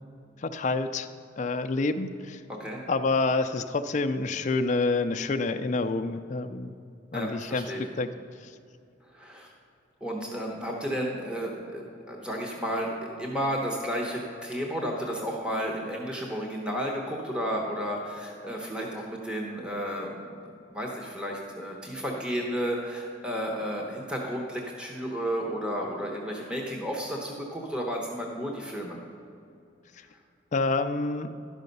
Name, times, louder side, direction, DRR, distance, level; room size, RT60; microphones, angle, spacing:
voice 1, 0.4-1.1 1.4-2.4 2.9-6.7 7.1-7.7 8.0-8.1 8.4-8.5 30.5-31.3, left 3 dB, 40° left, 8 dB, 0.4 m, -27 dB
voice 2, 2.5-2.8 7.1-7.8 9.1-9.5 10.0-29.0, equal, 5° right, -1 dB, 0.9 m, -32 dB
11.5 x 5.6 x 5.3 m, 2.5 s
head